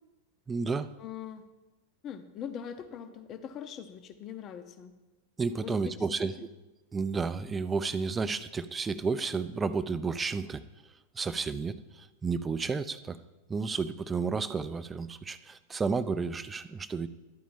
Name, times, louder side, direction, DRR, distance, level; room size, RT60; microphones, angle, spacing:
voice 1, 0.5-0.9 5.4-6.5 6.9-10.6 11.1-13.2 13.5-17.1, right 4 dB, 15° right, 13 dB, 0.5 m, -32 dB
voice 2, 1.0-1.4 2.0-4.9 5.6-6.5, left 8 dB, 30° left, 8 dB, 0.7 m, -42 dB
11.5 x 5.0 x 7.2 m, 1.1 s
figure-of-eight pair, 90°, 0 cm